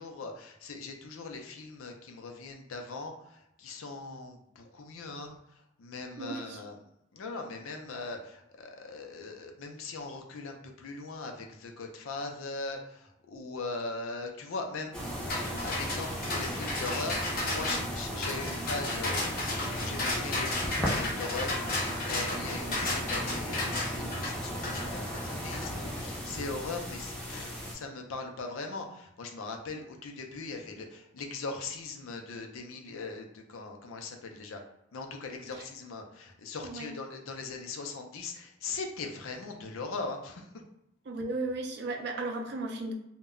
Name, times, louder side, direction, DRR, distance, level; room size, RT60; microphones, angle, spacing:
voice 1, 0.0-6.8 7.1-21.6 22.1-34.6 34.9-40.5, left 3 dB, 80° left, 3 dB, 0.5 m, -40 dB
voice 2, 6.2-6.6 22.6-22.9 36.6-36.9 41.1-42.9, right 2 dB, 50° right, 2 dB, 0.4 m, -35 dB
sound 1, 14.9-27.7, equal, 5° left, 0.5 m, -36 dB
sound 2, 15.3-25.7, left 2 dB, 45° left, 0.7 m, -34 dB
2.2 x 2.1 x 3.6 m, 0.82 s
head